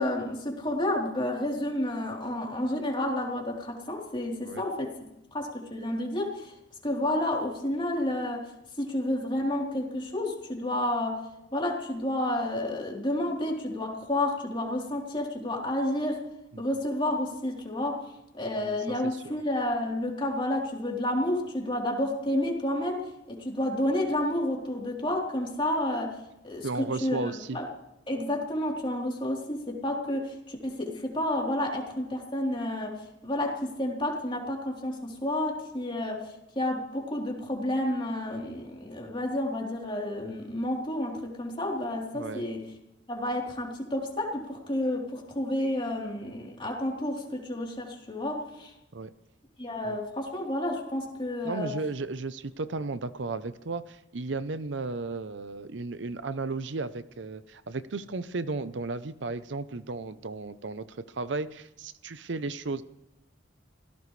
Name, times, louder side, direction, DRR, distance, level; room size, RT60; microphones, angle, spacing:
voice 1, 0.0-4.9 5.3-6.5 6.8-8.5 8.8-11.2 11.5-16.2 16.6-18.0 18.3-23.0 23.3-26.1 26.4-27.6 28.1-33.0 33.2-36.2 36.6-42.6 43.1-48.7 49.6-51.7, left 1 dB, 25° left, -1 dB, 3.6 m, -30 dB
voice 2, 26.6-27.6 42.1-42.4 48.9-49.1 49.8-50.0 51.4-60.9 61.1-62.8, right 3 dB, 75° right, 13 dB, 0.7 m, -34 dB
25.0 x 17.0 x 3.3 m, 0.90 s
head